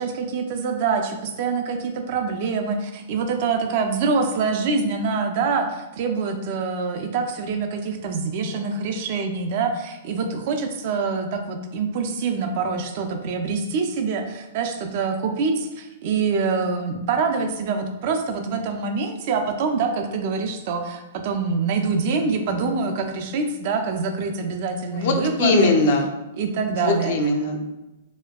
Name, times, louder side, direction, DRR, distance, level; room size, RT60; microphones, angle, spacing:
voice 1, 0.0-25.7 26.4-27.2, right 4 dB, 45° right, 5 dB, 0.4 m, -25 dB
voice 2, 24.9-26.0 26.7-27.6, left 3 dB, 50° left, 3 dB, 0.4 m, -20 dB
4.2 x 2.2 x 2.2 m, 0.99 s
figure-of-eight pair, 105°, 0 cm